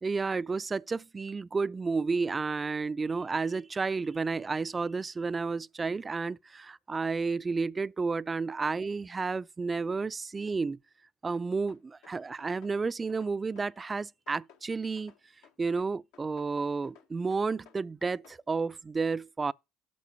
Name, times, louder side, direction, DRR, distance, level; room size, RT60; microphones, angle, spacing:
voice 1, 0.0-10.8 11.2-15.1 15.6-19.5, right 4 dB, 30° right, 0.4 m, -31 dB
sound 1, 11.3-12.8 13.1-14.7 15.0-16.5 16.8-18.4, left 7 dB, 80° left, 1.4 m, -58 dB
8.5 x 6.1 x 6.8 m
hypercardioid pair, 65°, 0 cm